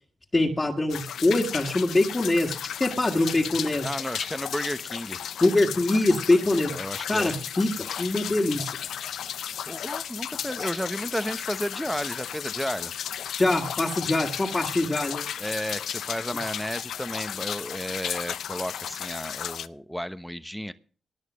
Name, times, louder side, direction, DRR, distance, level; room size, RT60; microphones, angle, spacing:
voice 1, 0.3-3.9 5.4-6.7 7.1-7.7 8.0-8.7 13.3-15.2, left 2 dB, 30° left, 0 dB, 2.0 m, -23 dB
sound 1, 0.9-19.7, left 9 dB, 75° left, 0.5 m, -34 dB
voice 2, 3.8-5.2 6.7-7.4 9.7-12.9 15.4-20.7, equal, 5° left, 12 dB, 1.0 m, -33 dB
18.0 x 6.5 x 6.4 m, 0.41 s
supercardioid pair, 40°, 0 cm